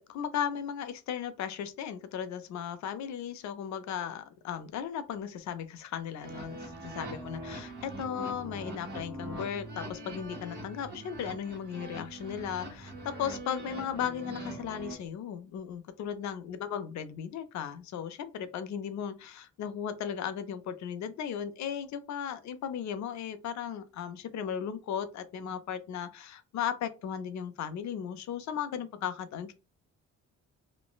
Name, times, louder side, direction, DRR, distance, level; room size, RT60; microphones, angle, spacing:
voice 1, 0.0-29.5, left 8 dB, 65° left, 0.5 m, -36 dB
sound 1, 6.2-15.0, right 1 dB, 30° right, 1.3 m, -42 dB
3.1 x 2.1 x 2.3 m
cardioid pair, 90°, 30 cm